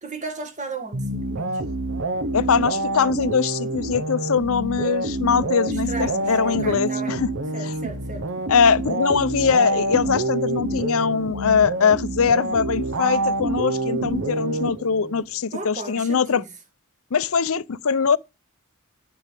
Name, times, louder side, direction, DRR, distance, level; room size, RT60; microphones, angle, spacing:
voice 1, 0.0-1.6 5.7-7.2 7.5-8.3 15.5-16.5, right 3 dB, 35° right, 2.0 m, -35 dB
sound 1, 0.9-15.2, right 2 dB, 60° right, 1.0 m, -27 dB
voice 2, 2.3-7.3 8.5-16.4 17.1-18.2, left 6 dB, 65° left, 0.6 m, -22 dB
8.9 x 7.9 x 7.5 m
head